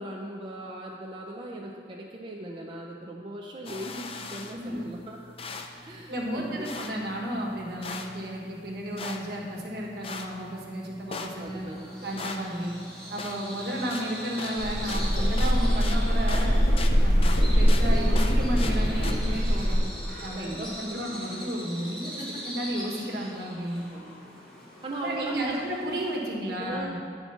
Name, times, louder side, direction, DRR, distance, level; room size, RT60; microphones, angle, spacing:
voice 1, 0.0-5.2 5.8-6.7 11.4-12.2 20.4-21.0 22.2-22.3 23.9-24.1 24.8-25.6 26.6-26.9, right 1 dB, 30° right, -1 dB, 0.5 m, -38 dB
sound 1, 3.6-19.1, left 4 dB, 30° left, 0.4 m, -41 dB
voice 2, 5.8-11.7 12.0-12.7 13.1-16.6 17.0-19.8 20.2-23.9 25.0-27.0, equal, 65° right, -2 dB, 1.4 m, -33 dB
Bird vocalization bird call bird song, 11.5-26.3, equal, 5° left, 2.1 m, -42 dB
sound 2, 14.6-19.8, equal, 65° left, 1.4 m, -22 dB
9.3 x 4.4 x 5.6 m, 2.2 s
head